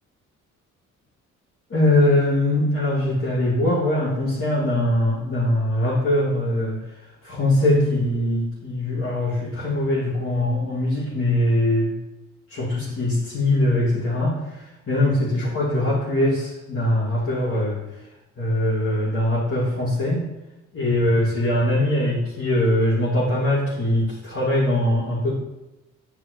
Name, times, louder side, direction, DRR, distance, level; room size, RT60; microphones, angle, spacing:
voice 1, 1.7-6.8 7.2-11.9 12.5-17.8 18.4-20.2 20.7-25.3, left 1 dB, 50° left, -10 dB, 2.7 m, -22 dB
9.0 x 5.7 x 3.2 m, 0.97 s
cardioid pair, 90°, 30 cm